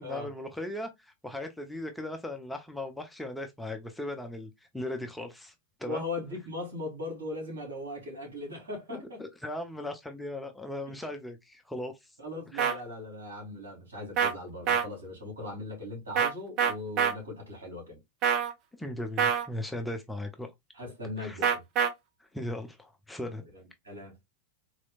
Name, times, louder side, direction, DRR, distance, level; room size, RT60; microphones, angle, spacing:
voice 1, 0.0-5.5 5.8-6.0 8.9-12.1 12.5-12.8 18.8-20.5 21.2-21.4 22.3-23.4, left 1 dB, 5° left, 0.6 m, -38 dB
voice 2, 5.9-9.2 12.2-18.0 20.7-21.6 23.5-24.1, left 2 dB, 70° right, 2.6 m, -39 dB
sound 1, 12.6-12.7 14.2-14.3 14.7-14.8 16.2-16.3 16.6-17.1 18.2-18.5 19.2-19.5 21.4-21.9, right 8 dB, 35° right, 0.7 m, -25 dB
4.0 x 3.1 x 2.3 m
figure-of-eight pair, 90°, 0 cm